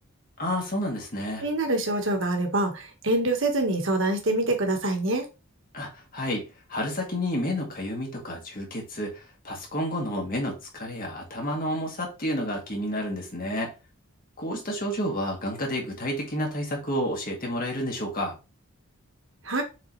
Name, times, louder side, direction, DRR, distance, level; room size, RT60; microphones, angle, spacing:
voice 1, 0.4-1.4 5.7-6.4 6.7-13.7 14.4-18.3, equal, 40° left, 2.2 m, -30 dB
voice 2, 1.4-5.2 19.4-19.6, right 2 dB, 55° right, 1.6 m, -25 dB
7.1 x 4.0 x 3.3 m
head